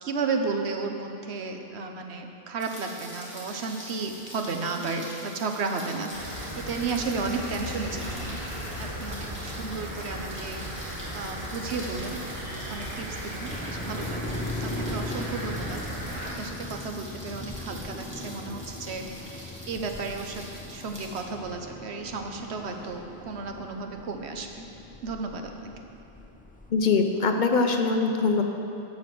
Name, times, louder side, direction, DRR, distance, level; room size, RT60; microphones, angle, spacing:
voice 1, 0.0-8.4 8.8-12.2 12.7-16.1 16.4-24.7 25.0-25.7, right 4 dB, 85° right, 4 dB, 1.2 m, -33 dB
Rain, 2.6-21.2, equal, 10° right, 2.3 m, -45 dB
sound 1, 6.1-16.3, equal, 55° right, 2.3 m, -36 dB
sound 2, 13.5-26.7, left 2 dB, 10° left, 0.4 m, -39 dB
voice 2, 26.7-28.4, left 4 dB, 50° left, 4 dB, 0.8 m, -23 dB
11.5 x 5.7 x 7.6 m, 2.8 s
omnidirectional pair, 1.1 m